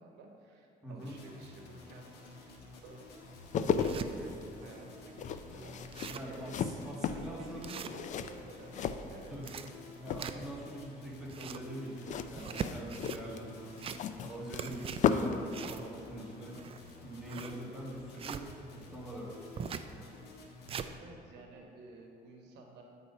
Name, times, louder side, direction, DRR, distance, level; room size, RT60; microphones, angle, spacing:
voice 1, 0.0-2.5 2.8-3.0 3.6-9.6 21.0-22.8, right 2 dB, 80° right, 2 dB, 1.0 m, -53 dB
voice 2, 0.8-1.2 6.1-7.8 9.3-9.5 10.0-13.8 14.2-16.6 17.0-19.3, right 1 dB, 5° right, -5 dB, 1.7 m, -44 dB
sound 1, 1.0-21.0, left 3 dB, 80° left, 1.3 m, -52 dB
sound 2, 2.8-2.9 3.4-4.1 4.7-4.8 5.0-5.1 5.5-5.6 5.8-6.4 6.8-7.0 7.6-8.4 9.2-10.7 11.1-11.7 12.3-13.2 13.7-14.3 14.5-18.5 19.6-19.9 20.4-20.9, right 7 dB, 35° right, 0.3 m, -41 dB
sound 3, 3.3-9.7 10.0-10.6 12.0-15.4 15.7-15.9, left 7 dB, 45° left, 0.4 m, -35 dB
8.7 x 4.1 x 5.5 m, 2.9 s
cardioid pair, 110°, 17 cm